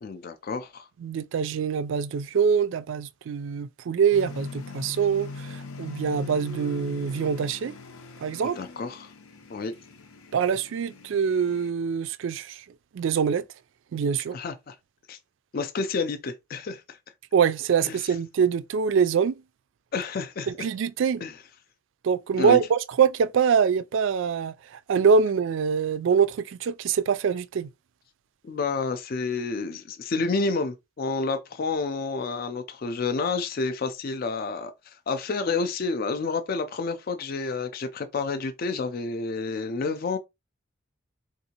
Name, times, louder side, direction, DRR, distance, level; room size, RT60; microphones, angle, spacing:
voice 1, 0.0-0.9 8.4-9.1 9.5-9.7 14.3-14.8 15.1-15.2 15.5-17.0 17.8-18.1 19.9-20.7 21.2-21.4 22.4-22.6 28.4-40.2, left 4 dB, 45° left, 0.3 m, -29 dB
voice 2, 1.0-7.7 8.2-8.6 10.3-12.6 12.9-13.4 13.9-14.4 17.3-19.4 20.5-21.2 22.0-27.7, right 6 dB, 65° right, 0.3 m, -24 dB
sound 1, 4.1-11.7, left 2 dB, 85° left, 0.7 m, -41 dB
3.7 x 2.6 x 2.8 m
head